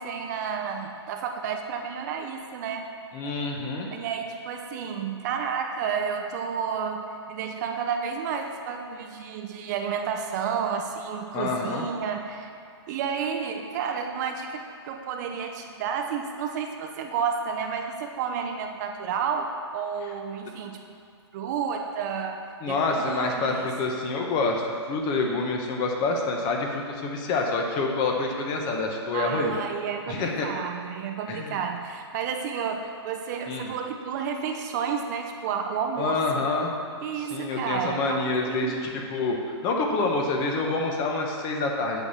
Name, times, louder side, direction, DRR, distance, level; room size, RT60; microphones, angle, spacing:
voice 1, 0.0-2.9 3.9-12.5 12.9-20.8 21.3-22.4 22.7-23.7 29.1-36.5 37.0-38.8, right 6 dB, 40° right, 3 dB, 0.7 m, -31 dB
voice 2, 3.1-3.9 11.3-11.8 22.6-24.6 24.9-29.5 30.1-30.5 31.3-31.6 33.5-33.7 36.0-36.7 37.2-42.0, left 3 dB, 30° left, 1 dB, 1.1 m, -27 dB
8.2 x 4.1 x 7.1 m, 2.4 s
hypercardioid pair, 135°, 15 cm